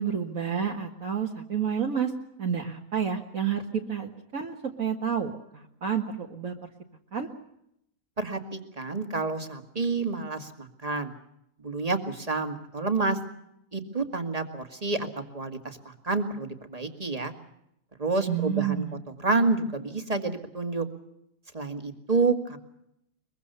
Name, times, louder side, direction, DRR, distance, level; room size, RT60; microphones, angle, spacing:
voice 1, 0.0-2.1 2.4-6.5 7.1-7.3 18.3-18.9, right 7 dB, 55° right, 1 dB, 2.0 m, -29 dB
voice 2, 8.2-11.1 11.6-13.2 13.7-17.3 18.0-18.9 19.2-20.9 21.5-22.6, right 3 dB, 25° right, 7 dB, 2.1 m, -29 dB
23.0 x 23.0 x 6.9 m, 0.77 s
omnidirectional pair, 1.7 m